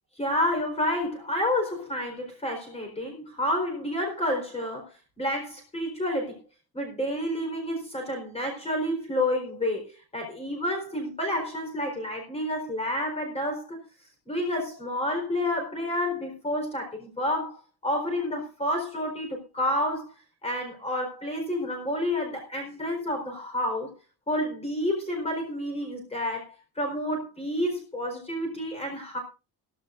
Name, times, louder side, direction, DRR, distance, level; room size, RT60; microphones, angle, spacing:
voice 1, 0.2-4.9 5.2-6.4 6.7-13.8 14.3-17.6 17.8-20.1 20.4-23.9 24.3-29.2, left 1 dB, 15° left, 3 dB, 4.2 m, -29 dB
16.5 x 15.0 x 2.6 m, 0.30 s
cardioid pair, 175°, 41 cm